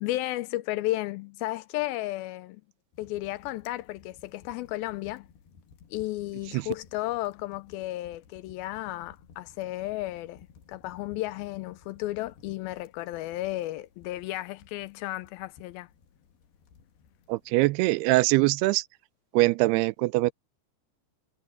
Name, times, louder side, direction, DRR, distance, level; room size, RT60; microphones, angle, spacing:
voice 1, 0.0-2.6 3.0-5.3 5.9-15.9, left 17 dB, 85° left, 2.1 m, -33 dB
sound 1, 2.9-17.5, left 6 dB, 65° left, 4.0 m, -57 dB
voice 2, 17.3-18.8 19.3-20.3, right 20 dB, 80° right, 2.5 m, -23 dB
omnidirectional pair, 4.8 m